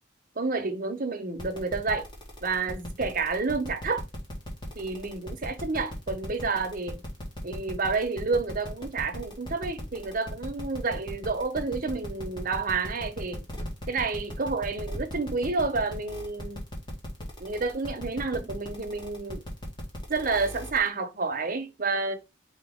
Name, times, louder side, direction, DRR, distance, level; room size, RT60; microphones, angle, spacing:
voice 1, 0.4-2.1 2.4-4.0 4.7-7.0 7.4-13.5 13.9-16.6 17.4-19.4 20.1-22.1, right 4 dB, 45° right, 0.9 m, -29 dB
sound 1, 1.4-20.9, equal, 25° left, 1.6 m, -38 dB
4.9 x 2.9 x 3.6 m
head